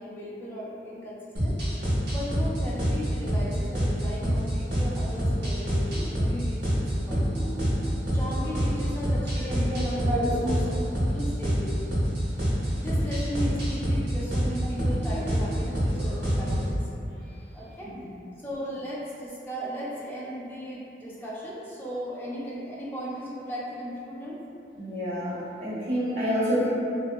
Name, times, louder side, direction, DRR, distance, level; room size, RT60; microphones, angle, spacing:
voice 1, 0.0-1.6 2.1-7.5 8.1-10.7 11.1-12.0 12.8-16.9 17.5-18.0 18.4-24.4, equal, 10° left, -7 dB, 0.4 m, -36 dB
sound 1, 1.4-16.7, equal, 70° right, 0.8 m, -26 dB
voice 2, 9.3-10.5 12.4-12.5 17.2-18.1 24.7-26.7, equal, 35° right, -13 dB, 1.3 m, -30 dB
2.7 x 2.2 x 2.2 m, 2.6 s
head